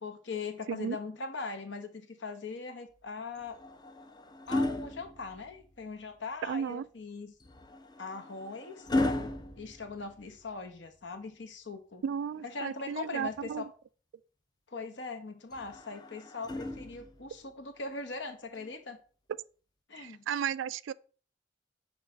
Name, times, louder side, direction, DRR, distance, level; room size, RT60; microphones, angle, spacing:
voice 1, 0.0-3.6 4.5-7.3 8.0-8.9 9.6-12.0 12.4-13.7 14.7-19.0 19.9-20.3, left 4 dB, 70° left, 1.0 m, -40 dB
sound 1, 3.4-5.8 7.4-10.6 12.4-13.5 15.5-17.3 18.6-18.8, left 2 dB, 20° left, 0.5 m, -36 dB
voice 2, 6.4-6.9 12.0-13.7 19.3-19.4 19.9-20.9, right 8 dB, 80° right, 0.3 m, -34 dB
6.1 x 3.4 x 5.1 m
head